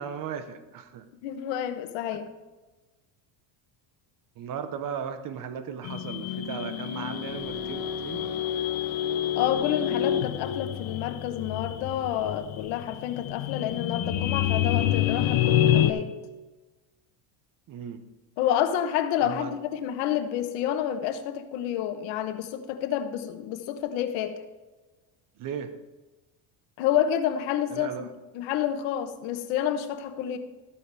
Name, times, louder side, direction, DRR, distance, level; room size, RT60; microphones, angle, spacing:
voice 1, 0.0-1.1 4.4-8.6 17.7-18.0 19.2-19.5 25.4-25.7 27.7-28.1, right 7 dB, 45° right, 10 dB, 1.0 m, -36 dB
voice 2, 1.2-2.3 9.4-16.1 18.4-24.4 26.8-28.1 28.3-30.4, left 10 dB, 90° left, 9 dB, 1.2 m, -29 dB
sound 1, 5.8-15.9, left 11 dB, 55° left, 0.9 m, -27 dB
13.0 x 8.8 x 3.4 m, 1.2 s
cardioid pair, 135°, 45 cm